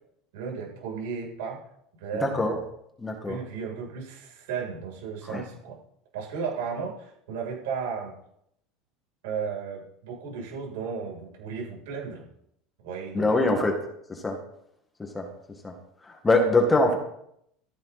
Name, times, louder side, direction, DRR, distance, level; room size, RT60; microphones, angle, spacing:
voice 1, 0.3-1.6 2.0-2.6 3.3-5.8 6.1-8.1 9.2-12.3 12.8-13.7, right 6 dB, 90° right, -2 dB, 7.8 m, -34 dB
voice 2, 2.2-2.6 3.0-3.4 5.3-5.4 13.1-13.8 14.1-14.4 15.0-15.3 15.6-15.8 16.0-17.0, left 2 dB, 10° left, 3 dB, 2.0 m, -23 dB
15.5 x 14.0 x 4.3 m, 0.75 s
cardioid pair, 165°, 0 cm